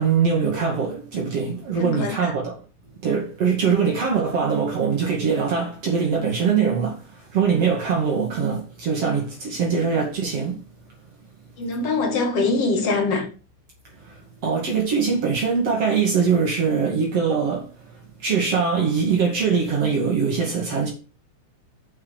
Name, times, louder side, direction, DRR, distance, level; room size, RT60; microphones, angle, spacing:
voice 1, 0.0-2.6 3.0-10.6 14.0-17.9 18.2-20.9, right 6 dB, 55° right, 3.1 m, -22 dB
voice 2, 1.8-2.3 3.6-3.7 11.6-13.3, left 3 dB, 55° left, 3.0 m, -23 dB
7.2 x 5.9 x 6.8 m
omnidirectional pair, 3.5 m